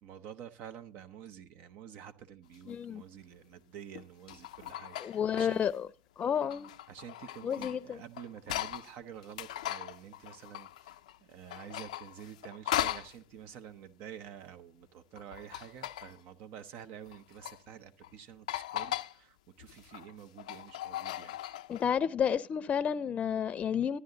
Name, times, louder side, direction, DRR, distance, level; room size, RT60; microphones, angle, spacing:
voice 1, 0.0-5.6 6.9-11.0 11.3-21.4, right 9 dB, 65° right, 0.8 m, -49 dB
sound 1, 2.5-2.7 3.9-5.7 6.2-8.9 9.2-11.2 11.5-13.2 15.2-16.2 17.1-17.6 18.0-18.1 18.5-19.1 19.6-21.9, left 13 dB, 90° left, 0.5 m, -39 dB
voice 2, 2.7-3.0 5.0-5.9 6.2-6.7 7.4-8.0 21.7-24.0, left 8 dB, 40° left, 0.6 m, -31 dB
13.0 x 9.7 x 3.9 m
hypercardioid pair, 80°, 4 cm